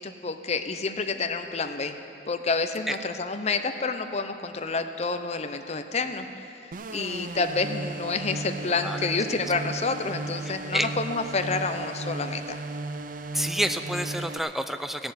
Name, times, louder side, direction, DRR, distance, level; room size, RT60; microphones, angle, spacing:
voice 1, 0.0-2.0 2.3-6.5 6.9-12.6, left 4 dB, 40° left, 7 dB, 0.7 m, -29 dB
sound 1, 6.7-14.4, right 2 dB, 50° right, 0.5 m, -35 dB
voice 2, 10.5-10.9 13.3-15.1, equal, ahead, 9 dB, 0.5 m, -29 dB
15.5 x 7.1 x 9.4 m, 2.7 s
head